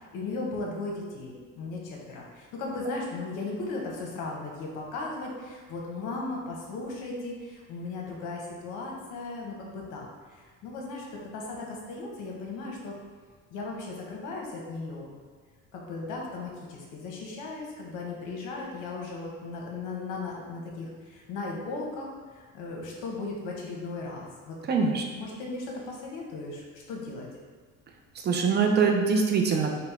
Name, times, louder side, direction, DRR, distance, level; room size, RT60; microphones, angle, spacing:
voice 1, 0.1-13.0 13.5-15.1 15.7-24.6 24.8-27.3, left 3 dB, 75° left, -1 dB, 1.0 m, -37 dB
voice 2, 24.7-25.0 28.2-29.7, right 5 dB, 35° right, 2 dB, 0.4 m, -23 dB
4.1 x 2.1 x 4.2 m, 1.5 s
cardioid pair, 125°, 31 cm